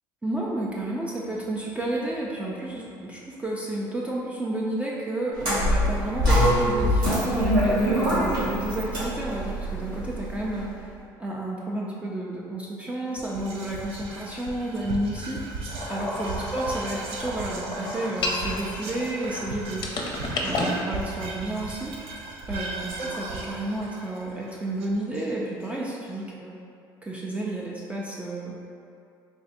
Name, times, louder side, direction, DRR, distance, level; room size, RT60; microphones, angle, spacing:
voice 1, 0.2-10.9 11.2-19.9 20.4-21.9 22.5-26.5 27.0-28.7, right 1 dB, 10° right, -4 dB, 0.5 m, -31 dB
sound 1, 5.4-10.6, equal, 80° right, 1.4 m, -24 dB
Whispering, 13.1-25.6, right 3 dB, 65° right, 0.5 m, -37 dB
sound 2, 15.7-19.4 19.8-20.8, left 2 dB, 45° left, 0.6 m, -31 dB
3.5 x 2.3 x 4.0 m, 2.5 s
hypercardioid pair, 75°, 11 cm